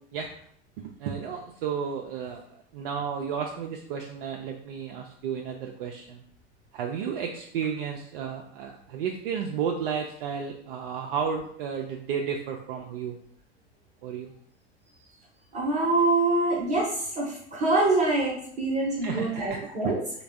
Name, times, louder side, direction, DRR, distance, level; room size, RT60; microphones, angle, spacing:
voice 1, 0.8-6.2 6.7-13.2 14.0-14.3 19.0-19.6 19.8-19.9, right 7 dB, 55° right, 2 dB, 0.4 m, -32 dB
voice 2, 15.5-20.0, right 2 dB, 20° right, -3 dB, 0.8 m, -25 dB
3.3 x 2.3 x 3.3 m, 0.64 s
figure-of-eight pair, 80°, 34 cm